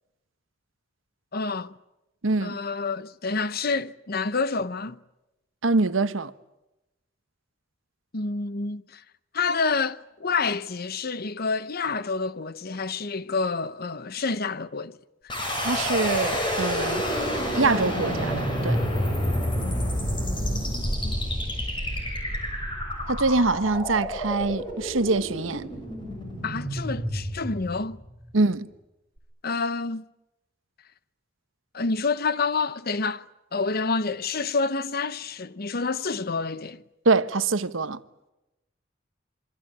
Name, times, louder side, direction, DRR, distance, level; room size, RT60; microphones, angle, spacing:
voice 1, 1.3-1.7 2.4-5.0 8.1-9.0 9.3-15.0 19.6-21.2 26.4-28.0 29.4-30.1 31.7-33.2 33.5-36.8, left 4 dB, 50° left, 0.9 m, -28 dB
voice 2, 2.2-2.6 5.6-6.3 15.6-17.0 17.5-18.8 23.1-25.7 28.3-28.7 37.0-38.0, right 3 dB, 85° right, 1.1 m, -24 dB
sound 1, 15.3-28.2, equal, 25° left, 6.9 m, -29 dB
27.0 x 24.5 x 8.7 m
head